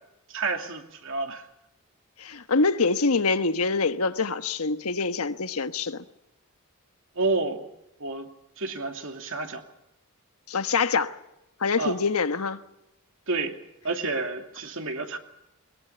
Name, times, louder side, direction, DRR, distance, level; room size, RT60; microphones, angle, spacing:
voice 1, 0.3-1.5 7.2-7.7 8.0-8.3 8.6-9.6 11.8-12.0 13.3-13.6 13.8-15.2, right 3 dB, 65° right, 2.8 m, -29 dB
voice 2, 2.2-6.0 10.5-11.1 11.6-12.6, left 4 dB, 90° left, 1.3 m, -25 dB
22.0 x 21.5 x 7.0 m
head